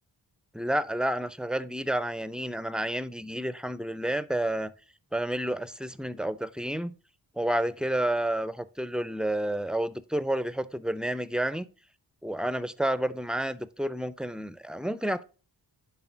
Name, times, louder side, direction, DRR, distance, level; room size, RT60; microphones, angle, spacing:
voice 1, 0.5-4.7 5.1-6.9 7.4-11.7 12.2-15.2, right 1 dB, ahead, 0.3 m, -30 dB
10.5 x 3.7 x 3.8 m
cardioid pair, 60°, 45 cm